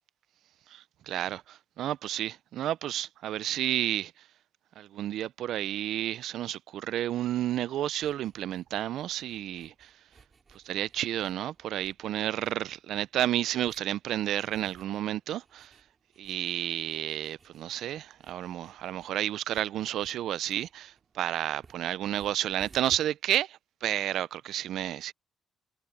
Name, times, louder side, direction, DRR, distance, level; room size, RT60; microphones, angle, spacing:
voice 1, 0.7-4.3 4.8-9.9 10.5-15.8 16.2-25.1, right 12 dB, 80° right, 0.4 m, -31 dB
sound 1, 7.4-23.0, right 4 dB, 35° right, 2.4 m, -60 dB
cardioid pair, 90°, 0 cm